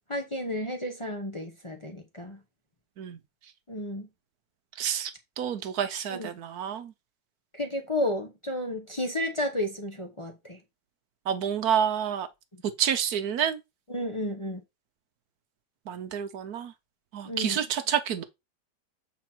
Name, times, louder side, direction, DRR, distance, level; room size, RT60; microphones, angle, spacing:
voice 1, 0.1-2.4 3.7-4.1 6.1-6.3 7.5-10.6 13.9-14.6 17.2-17.6, left 1 dB, 25° left, 0.9 m, -32 dB
voice 2, 4.8-5.1 5.4-6.9 11.3-12.3 12.8-13.6 15.9-16.7 17.1-18.2, right 8 dB, 70° right, 1.3 m, -28 dB
7.4 x 4.0 x 4.4 m
omnidirectional pair, 1.7 m